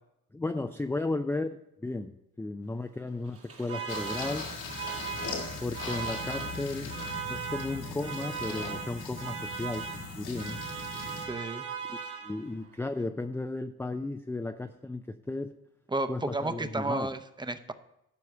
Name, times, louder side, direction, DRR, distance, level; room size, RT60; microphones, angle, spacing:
voice 1, 0.3-4.5 5.6-6.9 7.3-9.9 10.1-10.6 11.9-12.0 12.2-15.5 16.1-17.1, left 2 dB, 5° left, 6 dB, 0.4 m, -34 dB
Alarm, 3.3-12.7, right 7 dB, 50° right, 1.8 m, -39 dB
sound 1, 3.9-11.3, left 4 dB, 90° left, 2.3 m, -39 dB
voice 2, 11.3-11.6 15.9-17.7, right 2 dB, 15° right, 10 dB, 0.8 m, -32 dB
12.0 x 4.8 x 6.7 m, 0.82 s
cardioid pair, 90°, 30 cm